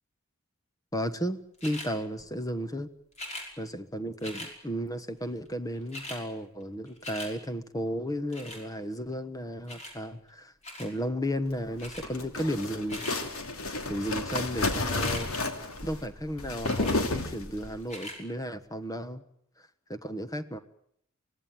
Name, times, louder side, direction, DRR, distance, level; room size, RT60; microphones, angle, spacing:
voice 1, 0.9-2.9 3.6-10.5 10.8-13.1 13.9-15.3 15.8-19.2 19.9-20.6, equal, 15° left, 9 dB, 1.2 m, -34 dB
sound 1, 1.6-1.9 3.1-3.5 4.2-4.5 5.5-5.6 5.7-6.2 6.6-7.3 8.3-8.6 9.7-10.0 10.6-10.9 11.8-12.1 12.7-13.2 14.9-15.3 16.6-17.0 17.8-18.2 18.8-18.9, left 1 dB, 30° left, 5.6 m, -41 dB
sound 2, 11.7-17.8, left 2 dB, 75° left, 2.8 m, -31 dB
25.0 x 17.5 x 9.1 m, 0.74 s
head